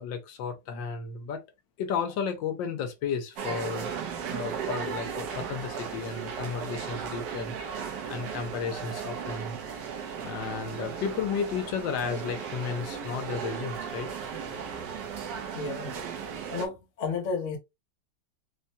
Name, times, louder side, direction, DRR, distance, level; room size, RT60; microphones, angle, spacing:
voice 1, 0.0-1.4 1.8-9.6 10.2-14.1, left 6 dB, 80° left, 1.4 m, -33 dB
sound 1, 3.4-16.7, right 7 dB, 70° right, 1.3 m, -36 dB
voice 2, 15.5-15.9 16.5-17.6, left 4 dB, 50° left, 1.1 m, -32 dB
4.1 x 2.2 x 2.7 m
omnidirectional pair, 2.0 m